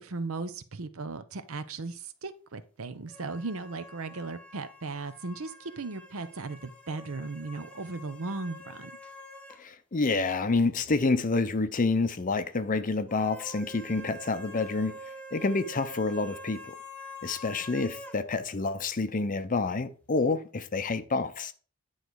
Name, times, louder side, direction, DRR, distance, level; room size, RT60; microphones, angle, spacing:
voice 1, 0.0-8.9, right 3 dB, 65° right, 0.7 m, -37 dB
sound 1, 3.1-9.6 9.9-10.0 13.1-18.2, equal, 5° left, 0.9 m, -46 dB
voice 2, 9.6-15.0 15.3-16.8 17.2-21.5, left 3 dB, 35° left, 0.6 m, -28 dB
10.0 x 4.0 x 4.7 m
head